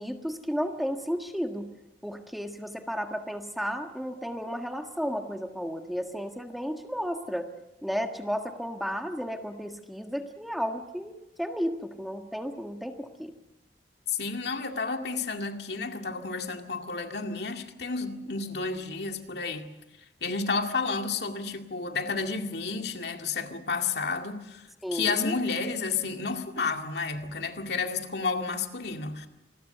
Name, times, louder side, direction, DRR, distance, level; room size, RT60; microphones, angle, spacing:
voice 1, 0.0-1.7 2.0-7.5 7.8-13.3 24.8-25.3, equal, ahead, 1.6 m, -33 dB
voice 2, 14.1-19.7 20.2-29.3, left 4 dB, 70° left, 2.2 m, -31 dB
27.5 x 21.0 x 6.8 m
head